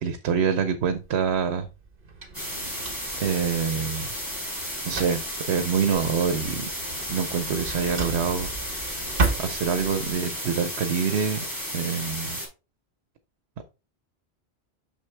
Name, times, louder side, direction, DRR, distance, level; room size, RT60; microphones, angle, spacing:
voice 1, 0.0-1.7 3.2-4.1 4.8-5.2 5.5-6.7 7.1-8.5 9.4-11.5 11.7-12.4 13.6-13.7, right 6 dB, 85° right, 1.0 m, -26 dB
Drawer open or close, 0.8-10.1, right 3 dB, 55° right, 1.5 m, -34 dB
sound 1, 2.3-12.5, equal, 20° left, 4.3 m, -33 dB
6.5 x 6.2 x 3.3 m
omnidirectional pair, 1.1 m